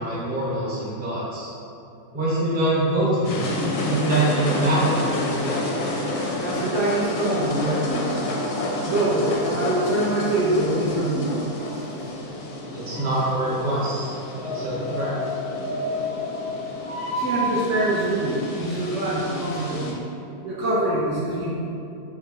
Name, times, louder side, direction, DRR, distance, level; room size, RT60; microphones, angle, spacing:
voice 1, 0.0-1.5 2.1-3.5 3.8-5.2 12.7-14.1 14.4-15.1, right 1 dB, 10° right, -9 dB, 0.5 m, -24 dB
sound 1, 3.2-19.9, left 1 dB, 65° left, 0.7 m, -29 dB
voice 2, 6.4-8.2 8.8-11.3 17.1-20.0 20.4-21.5, right 1 dB, 60° right, -7 dB, 0.9 m, -24 dB
4.7 x 2.1 x 3.4 m, 2.7 s
omnidirectional pair, 1.6 m